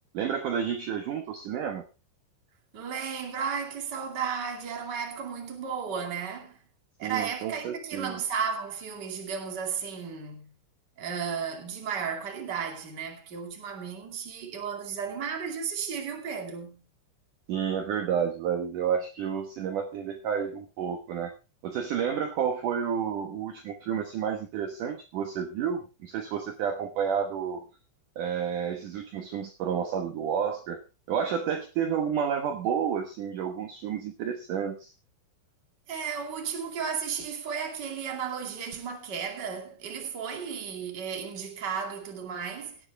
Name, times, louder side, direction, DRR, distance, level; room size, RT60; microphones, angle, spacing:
voice 1, 0.1-1.8 7.0-8.2 17.5-21.3 21.6-27.6 28.2-30.8 31.1-34.9, right 7 dB, 75° right, 1.9 m, -30 dB
voice 2, 2.7-6.6 7.0-10.5 11.0-16.9 35.9-42.8, right 6 dB, 35° right, 1.8 m, -34 dB
17.0 x 9.9 x 3.4 m
omnidirectional pair, 5.5 m